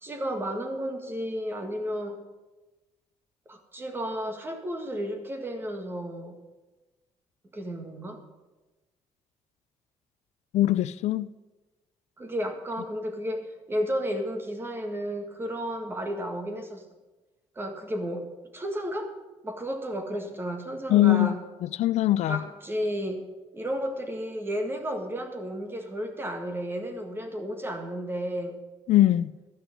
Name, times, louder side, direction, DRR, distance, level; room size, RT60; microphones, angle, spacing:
voice 1, 0.0-2.2 3.5-6.4 7.5-8.2 12.2-16.8 17.6-19.1 19.4-21.4 22.3-23.2 23.5-28.6, equal, 20° right, 1.7 m, -32 dB
voice 2, 10.5-11.3 20.9-21.3 21.6-22.4 28.9-29.3, left 14 dB, 75° left, 0.4 m, -21 dB
12.5 x 6.1 x 9.5 m
cardioid pair, 145°, 11 cm